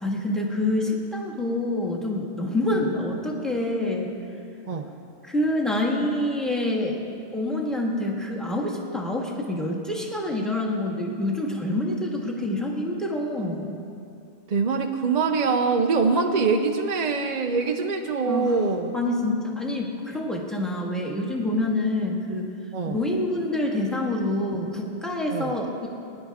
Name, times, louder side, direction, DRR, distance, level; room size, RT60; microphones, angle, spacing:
voice 1, 0.0-4.1 5.2-7.0 7.3-13.7 18.3-18.6 18.9-22.5 22.9-25.9, left 1 dB, ahead, -2 dB, 1.5 m, -27 dB
voice 2, 14.5-18.9 22.7-23.0 25.3-25.6, right 4 dB, 45° right, 4 dB, 0.6 m, -24 dB
21.0 x 10.5 x 3.5 m, 2.5 s
omnidirectional pair, 1.2 m